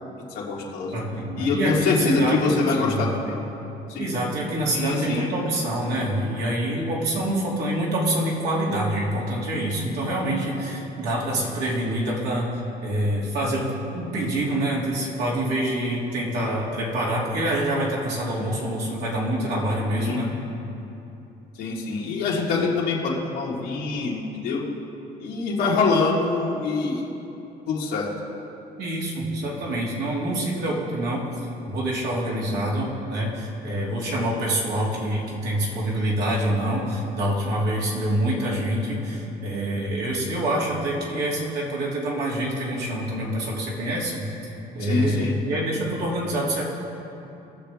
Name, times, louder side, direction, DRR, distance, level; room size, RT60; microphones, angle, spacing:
voice 1, 0.3-1.0 1.4-3.4 3.9-5.3 10.6-10.7 19.9-20.3 21.6-24.6 25.2-27.0 27.7-28.1 44.8-45.4, left 4 dB, 85° left, -5 dB, 1.8 m, -25 dB
voice 2, 0.9-3.1 4.0-12.5 12.8-20.3 28.8-31.2 31.7-44.3 44.7-46.6, right 1 dB, 80° right, -4 dB, 2.6 m, -26 dB
19.0 x 6.7 x 3.5 m, 2.9 s
cardioid pair, 110°, 17 cm